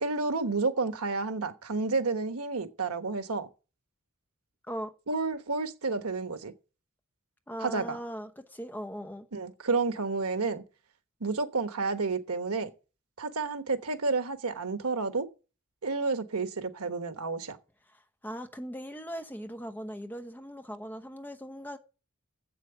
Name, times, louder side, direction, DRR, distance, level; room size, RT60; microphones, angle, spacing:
voice 1, 0.0-3.5 5.1-6.5 7.6-8.0 9.3-10.6 11.2-12.7 13.2-15.3 15.8-17.6, right 3 dB, 90° right, 1.2 m, -30 dB
voice 2, 7.5-9.3 17.9-21.8, equal, 10° left, 0.9 m, -39 dB
7.9 x 7.5 x 7.6 m
head